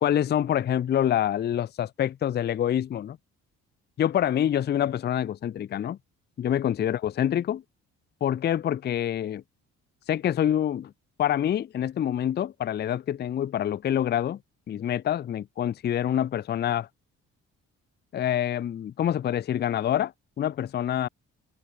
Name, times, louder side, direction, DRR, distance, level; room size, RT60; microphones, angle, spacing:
voice 1, 0.0-3.2 4.0-6.0 6.4-7.6 8.2-9.4 10.1-10.9 11.2-14.4 14.7-16.9 18.1-21.1, left 10 dB, 35° left, 0.4 m, -26 dB
cardioid pair, 90°, 30 cm